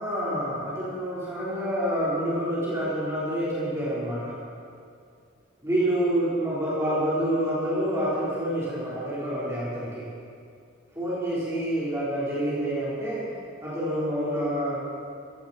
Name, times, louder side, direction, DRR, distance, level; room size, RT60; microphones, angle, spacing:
voice 1, 0.0-4.4 5.6-10.0 10.9-13.3 13.6-14.8, right 1 dB, 15° right, -10 dB, 4.3 m, -27 dB
16.0 x 15.5 x 4.5 m, 2.3 s
head